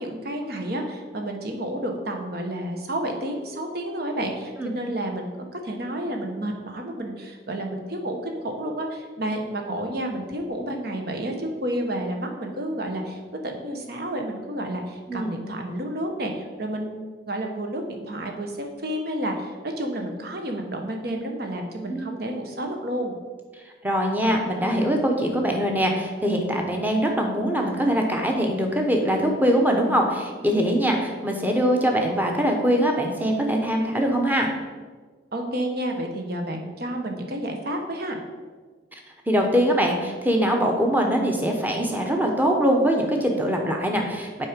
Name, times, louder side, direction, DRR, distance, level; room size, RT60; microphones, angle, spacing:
voice 1, 0.0-23.2 35.3-38.2, right 1 dB, 60° right, 3 dB, 1.1 m, -30 dB
voice 2, 23.8-34.5 39.3-44.5, equal, 10° right, 2 dB, 0.9 m, -22 dB
7.6 x 4.9 x 5.1 m, 1.4 s
head